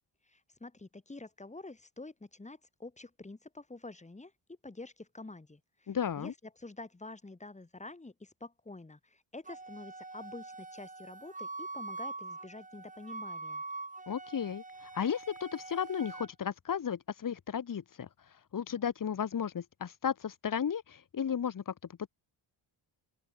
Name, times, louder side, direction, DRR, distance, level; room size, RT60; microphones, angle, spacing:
voice 1, 0.3-4.3 4.6-6.3 6.6-13.6, left 2 dB, 15° left, 4.6 m, -48 dB
voice 2, 5.9-6.3 14.1-18.1 18.5-21.7, left 8 dB, 45° left, 2.2 m, -34 dB
Wind instrument woodwind instrument, 9.5-16.3, right 3 dB, 15° right, 3.1 m, -44 dB
open air
wide cardioid pair, 145°, 45 cm